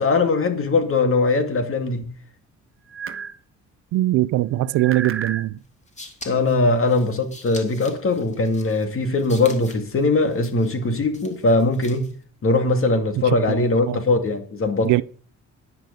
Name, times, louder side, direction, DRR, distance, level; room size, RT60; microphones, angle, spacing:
voice 1, 0.0-2.1 6.3-12.1 12.4-14.9, left 3 dB, 45° left, 2.4 m, -21 dB
sound 1, 2.9-3.4 4.6-5.5, right 6 dB, 45° right, 1.4 m, -31 dB
voice 2, 3.9-5.5 13.5-13.6 13.9-14.0 14.8-15.0, right 16 dB, 80° right, 0.6 m, -20 dB
sound 2, 5.6-12.2, left 2 dB, 25° left, 3.1 m, -44 dB
10.5 x 10.5 x 6.7 m
cardioid pair, 90°, 30 cm